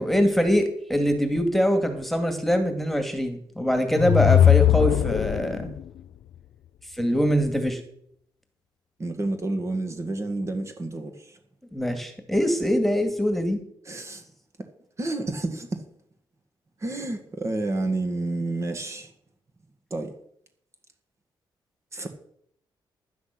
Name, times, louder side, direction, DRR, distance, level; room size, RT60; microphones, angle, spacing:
voice 1, 0.0-5.7 7.0-7.8 11.7-13.6, equal, ahead, 2.2 m, -23 dB
sound 1, 3.8-5.8, left 11 dB, 75° left, 0.4 m, -19 dB
voice 2, 9.0-11.4 13.8-14.2 15.0-15.9 16.8-19.1 19.9-20.1 21.9-22.1, right 2 dB, 30° right, 1.8 m, -30 dB
11.5 x 9.5 x 6.0 m
cardioid pair, 100°, 9 cm